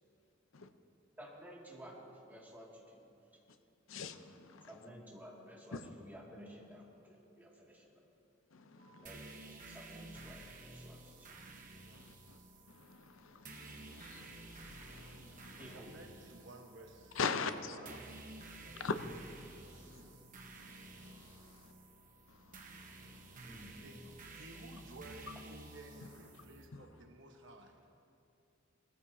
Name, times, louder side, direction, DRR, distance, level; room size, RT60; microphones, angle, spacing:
voice 1, 1.2-2.0 2.3-3.1 4.7-8.0 9.0-9.3 9.6-11.4 15.6-16.0 23.4-23.8, equal, 10° right, -5 dB, 2.2 m, -53 dB
voice 2, 3.9-4.7 5.7-5.9 8.5-9.1 11.9-12.4 12.7-15.6 17.2-17.8 18.8-19.0 19.3-19.9 20.6-21.7 22.3-23.4 26.7-26.8, left 5 dB, 85° left, 9 dB, 0.6 m, -43 dB
sound 1, 8.8-25.6, left 2 dB, 50° left, 2.2 m, -72 dB
sound 2, 9.1-26.7, right 2 dB, 40° right, 1.1 m, -53 dB
voice 3, 10.9-12.1 15.7-17.2 17.6-18.2 18.6-18.9 19.4-20.2 23.8-27.8, right 2 dB, 65° right, 3 dB, 1.2 m, -56 dB
20.0 x 13.5 x 2.8 m, 2.7 s
head